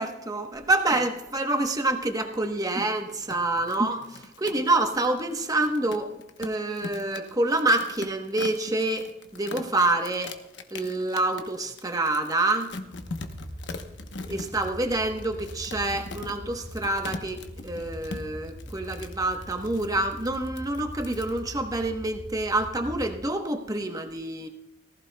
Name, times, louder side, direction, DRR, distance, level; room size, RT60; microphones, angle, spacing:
voice 1, 0.0-4.0 4.4-6.1 6.4-10.4 10.7-12.7 14.3-24.5, right 2 dB, 20° right, 5 dB, 1.0 m, -27 dB
sound 1, 3.1-21.5, left 3 dB, 65° left, 1.0 m, -41 dB
sound 2, 12.9-23.2, equal, 10° left, 2.0 m, -42 dB
18.5 x 15.0 x 2.2 m, 0.98 s
head